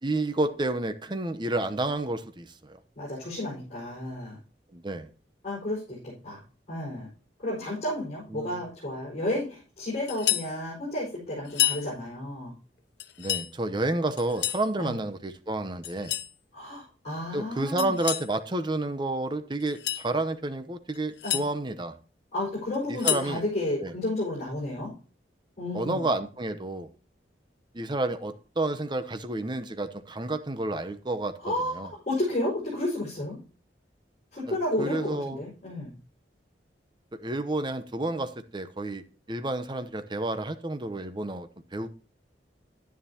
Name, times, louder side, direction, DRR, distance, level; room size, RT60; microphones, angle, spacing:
voice 1, 0.0-2.8 4.7-5.1 8.3-8.6 13.2-16.2 17.3-21.9 22.9-23.4 23.8-23.9 25.7-26.9 27.7-31.3 31.7-31.9 34.5-35.4 37.1-41.9, right 2 dB, 25° right, 10 dB, 0.8 m, -30 dB
voice 2, 3.0-4.4 5.4-6.4 6.7-7.1 7.4-12.5 14.8-14.9 16.5-17.9 21.2-21.4 22.3-24.9 25.6-26.1 31.4-33.4 34.3-36.0, left 1 dB, 40° left, -6 dB, 5.3 m, -32 dB
sound 1, 10.1-10.5 11.5-11.8 13.0-13.5 14.2-14.7 15.8-16.3 17.8-18.3 19.6-20.1 20.9-21.5 22.7-23.3, left 13 dB, 70° left, 0.7 m, -29 dB
11.0 x 9.8 x 2.9 m, 0.37 s
head